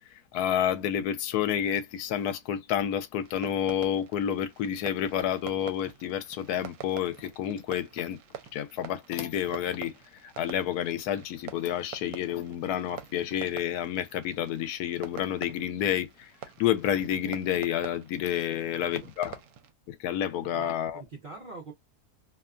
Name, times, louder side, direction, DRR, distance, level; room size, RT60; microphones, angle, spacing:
voice 1, 0.3-8.2 8.5-9.9 10.2-16.3 16.6-19.4 19.9-21.0, left 10 dB, 80° left, 1.1 m, -29 dB
Fireworks, 3.2-19.7, right 10 dB, 75° right, 1.0 m, -47 dB
voice 2, 18.5-19.1 20.4-21.7, right 3 dB, 45° right, 0.7 m, -45 dB
2.7 x 2.2 x 2.4 m
omnidirectional pair, 1.6 m